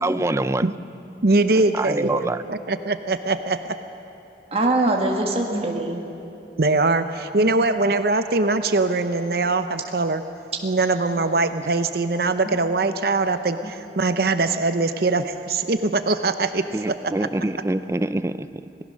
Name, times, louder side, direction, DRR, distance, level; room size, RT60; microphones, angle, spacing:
voice 1, 0.0-0.7 1.5-2.4 16.7-18.5, right 1 dB, 15° right, 13 dB, 0.4 m, -25 dB
voice 2, 1.2-2.1 2.5-3.6 6.6-10.2 10.6-17.0, right 3 dB, 55° right, 10 dB, 0.7 m, -22 dB
voice 3, 2.0-2.3 4.5-6.0 12.5-12.6 13.6-13.7, right 2 dB, 35° right, 1 dB, 1.6 m, -23 dB
27.5 x 19.0 x 6.5 m, 2.9 s
head